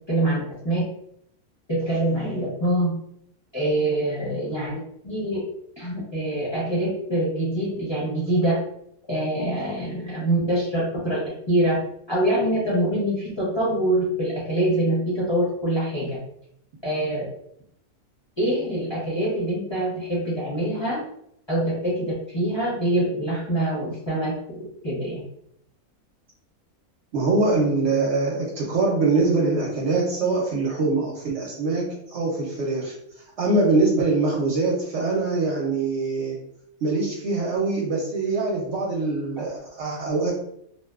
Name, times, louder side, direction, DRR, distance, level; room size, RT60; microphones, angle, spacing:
voice 1, 0.1-0.8 1.7-2.9 3.5-5.4 5.8-8.6 9.1-11.7 12.1-16.2 16.8-17.2 18.4-21.0 21.5-25.2, right 1 dB, 25° left, -7 dB, 0.6 m, -25 dB
voice 2, 27.1-32.9 33.4-36.4 36.8-40.3, right 3 dB, 65° right, -2 dB, 0.8 m, -23 dB
2.7 x 2.1 x 2.3 m, 0.73 s
omnidirectional pair, 1.4 m